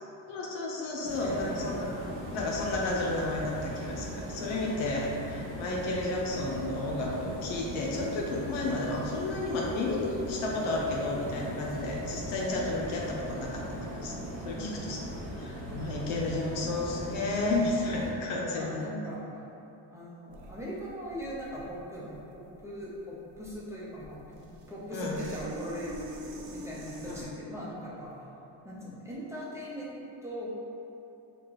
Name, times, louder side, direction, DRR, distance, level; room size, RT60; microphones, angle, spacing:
voice 1, 0.3-1.9 2.3-14.2 14.4-15.0 15.3-18.9 24.9-25.2 27.1-27.3, left 2 dB, 70° left, -3 dB, 0.8 m, -32 dB
voice 2, 1.0-2.3 14.5-14.9 18.5-19.3 19.9-28.1 28.6-30.5, equal, 5° right, -8 dB, 0.9 m, -40 dB
sound 1, 1.0-18.1, equal, 85° right, 1.0 m, -39 dB
sound 2, 20.3-27.2, equal, 60° right, 0.7 m, -45 dB
4.4 x 2.5 x 3.1 m, 2.9 s
supercardioid pair, 70°, 50 cm